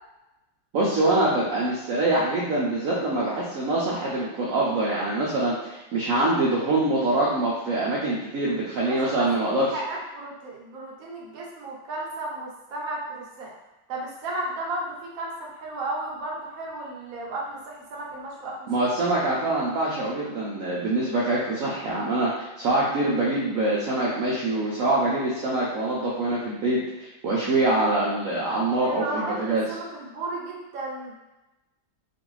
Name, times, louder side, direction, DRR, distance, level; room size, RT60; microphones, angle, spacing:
voice 1, 0.7-9.7 18.7-29.6, right 2 dB, 90° right, -6 dB, 0.7 m, -24 dB
voice 2, 8.7-9.3 9.6-13.5 13.9-18.7 28.8-31.1, right 2 dB, 60° right, -3 dB, 1.0 m, -34 dB
3.0 x 2.5 x 3.0 m, 1.0 s
omnidirectional pair, 2.1 m